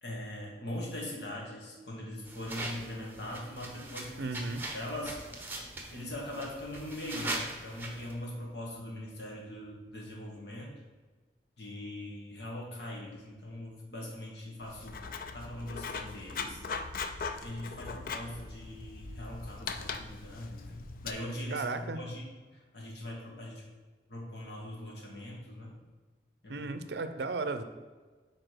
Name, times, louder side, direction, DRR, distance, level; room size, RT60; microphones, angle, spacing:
voice 1, 0.0-4.4 4.7-5.1 5.9-10.8 11.6-14.9 15.3-16.6 17.4-23.6 24.1-25.7 26.4-26.7, left 1 dB, 70° left, -3 dB, 1.8 m, -41 dB
sound 1, 2.3-8.1, right 2 dB, 10° right, 0.9 m, -41 dB
voice 2, 4.2-4.6 21.5-22.0 26.5-27.6, right 3 dB, 65° right, 10 dB, 0.5 m, -35 dB
Writing, 14.6-21.1, left 5 dB, 50° left, 0.4 m, -40 dB
5.0 x 4.2 x 6.0 m, 1.4 s
head